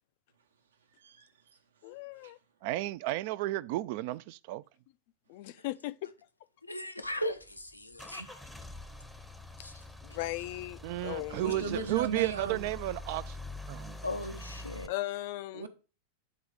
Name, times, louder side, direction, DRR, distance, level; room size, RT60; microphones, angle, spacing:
voice 1, 1.0-1.6 2.2-2.3 11.3-12.7 15.5-15.7, right 6 dB, 70° right, 0.9 m, -37 dB
voice 2, 1.8-2.4 5.3-6.1 10.0-11.8 14.9-15.7, left 16 dB, 50° left, 0.4 m, -38 dB
voice 3, 2.6-4.6 10.8-13.4 13.7-14.0, right 17 dB, 50° right, 0.3 m, -33 dB
voice 4, 6.6-8.4 9.6-9.8 14.0-14.9, left 1 dB, 85° left, 0.6 m, -37 dB
Car / Engine starting / Idling, 7.0-14.9, left 2 dB, ahead, 0.7 m, -45 dB
8.5 x 3.9 x 4.9 m
figure-of-eight pair, 90°, 0 cm